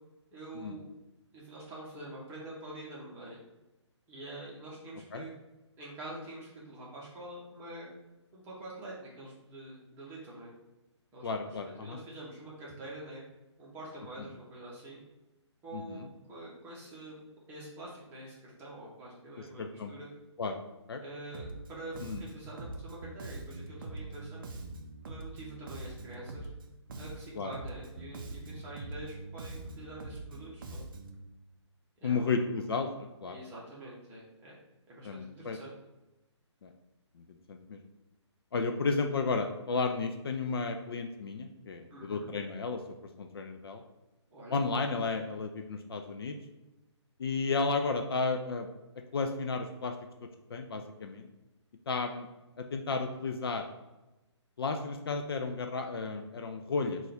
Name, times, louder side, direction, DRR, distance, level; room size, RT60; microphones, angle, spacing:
voice 1, 0.3-0.9 1.3-3.4 4.1-5.3 5.8-7.9 8.3-10.5 11.1-13.2 13.6-15.0 15.6-17.2 17.5-20.1 21.0-24.6 25.0-26.5 26.9-30.8 32.0-32.3 33.3-34.6 34.9-35.7 41.9-42.3 44.3-44.6, right 1 dB, 15° right, -6 dB, 0.9 m, -46 dB
voice 2, 11.2-12.0 15.7-16.1 19.4-19.9 20.4-20.6 20.9-21.0 22.0-22.2 27.4-27.5 32.0-33.4 35.0-35.6 36.6-36.7 37.2-37.8 38.5-42.8 43.2-43.8 44.5-46.3 47.2-48.7 49.1-49.9 50.5-51.3 51.9-52.3 52.6-53.7 54.6-57.0, left 4 dB, 55° left, 5 dB, 0.4 m, -33 dB
Bass guitar, 21.3-21.7 21.9-26.6 26.9-31.2, right 2 dB, 45° right, 0.4 m, -43 dB
3.7 x 2.4 x 3.4 m, 1.0 s
figure-of-eight pair, 140°, 15 cm